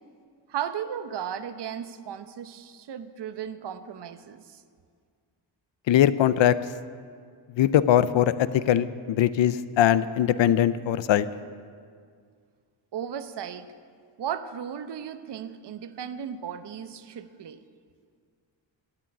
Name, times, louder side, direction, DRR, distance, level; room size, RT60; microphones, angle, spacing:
voice 1, 0.5-4.6 12.9-13.7 14.2-17.6, right 8 dB, 60° right, 11 dB, 0.8 m, -35 dB
voice 2, 5.9-6.5 7.6-11.3, left 11 dB, 65° left, 16 dB, 0.6 m, -21 dB
12.5 x 9.0 x 9.3 m, 2.1 s
wide cardioid pair, 140°, 48 cm